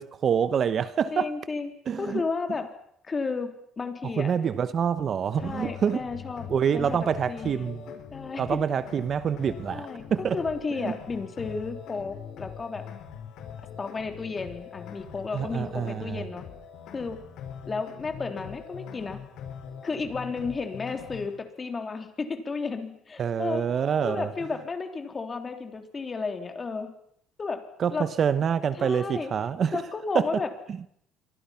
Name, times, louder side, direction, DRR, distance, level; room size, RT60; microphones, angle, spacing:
voice 1, 0.0-1.3 1.9-2.2 4.2-6.0 6.5-7.8 8.4-10.4 10.8-10.9 15.3-16.2 23.2-24.3 27.8-29.8 30.1-30.3, right 7 dB, 40° right, 0.9 m, -26 dB
voice 2, 1.1-1.7 2.0-2.7 3.1-4.3 5.4-7.7 8.1-8.6 9.7-12.8 13.8-16.4 16.9-17.2 17.6-19.2 19.8-23.6 24.0-26.9 27.4-28.1 28.8-29.3 29.7-30.5, left 4 dB, 25° left, 3.4 m, -33 dB
sound 1, 5.4-21.4, left 8 dB, 65° left, 5.3 m, -42 dB
27.5 x 24.5 x 5.8 m
cardioid pair, 135°, 0 cm